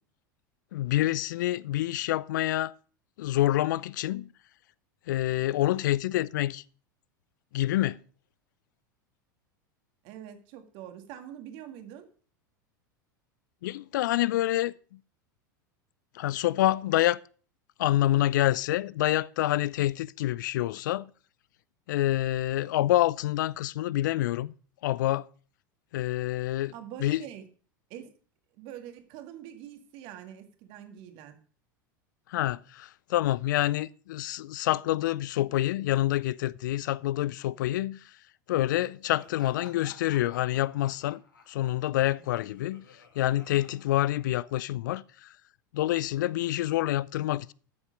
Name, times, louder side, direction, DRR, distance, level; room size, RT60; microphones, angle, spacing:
voice 1, 0.7-2.7 3.2-4.3 5.1-6.6 7.5-8.0 13.6-15.0 16.1-17.2 17.8-21.1 21.9-24.5 24.8-25.3 25.9-26.7 27.0-27.2 32.3-38.1 38.5-41.2 41.5-42.8 43.2-45.3 45.7-47.5, left 14 dB, 65° left, 0.5 m, -27 dB
voice 2, 10.0-12.1 26.7-27.5 27.9-28.1 28.5-31.4, right 10 dB, 55° right, 1.9 m, -44 dB
Laughter, 39.2-44.6, left 5 dB, 80° left, 2.2 m, -54 dB
12.5 x 7.2 x 5.1 m
hypercardioid pair, 85°, 11 cm